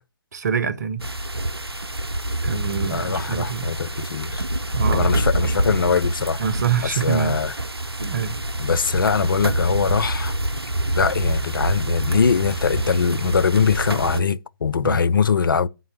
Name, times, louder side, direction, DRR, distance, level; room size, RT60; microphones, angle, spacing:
voice 1, 0.3-1.1 2.4-3.7 4.7-5.2 6.4-7.4 8.0-8.4 14.8-15.0, right 7 dB, 45° right, 0.8 m, -25 dB
sound 1, 1.0-14.2, right 1 dB, 90° right, 0.6 m, -26 dB
voice 2, 2.9-4.4 4.9-6.4 6.8-7.5 8.6-10.4 11.0-15.7, left 6 dB, 60° left, 0.4 m, -22 dB
10.5 x 3.9 x 6.2 m
figure-of-eight pair, 135°, 13 cm